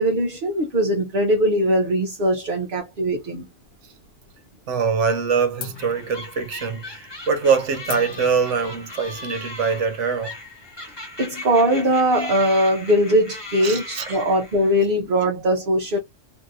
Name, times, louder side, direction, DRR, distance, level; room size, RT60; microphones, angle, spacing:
voice 1, 0.0-3.5 11.2-16.0, equal, 50° right, 0.9 m, -20 dB
sound 1, 3.6-4.5 4.8-5.2 5.6-10.7, left 8 dB, 85° left, 1.1 m, -41 dB
voice 2, 4.7-10.3 13.6-14.2, right 5 dB, 70° right, 1.1 m, -23 dB
sound 2, 5.7-14.8, left 2 dB, 25° left, 0.8 m, -38 dB
2.9 x 2.6 x 2.5 m
omnidirectional pair, 1.3 m